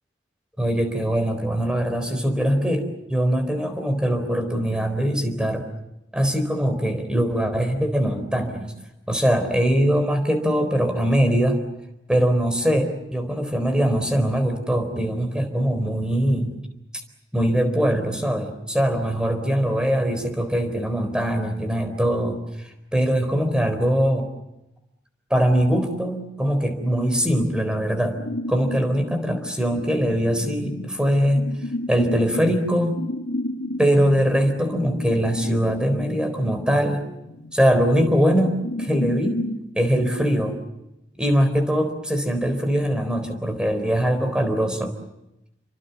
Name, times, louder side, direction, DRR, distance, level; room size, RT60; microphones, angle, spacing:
voice 1, 0.6-5.6 6.1-8.7 9.1-11.6 12.1-16.5 17.3-24.3 25.3-28.2 28.5-31.4 31.9-33.0 33.8-37.0 37.5-39.4 39.7-40.5 41.2-44.9, equal, 5° right, 7 dB, 4.1 m, -22 dB
sound 1, 28.2-39.6, left 1 dB, 75° left, 1.7 m, -32 dB
29.5 x 25.0 x 7.0 m, 0.91 s
head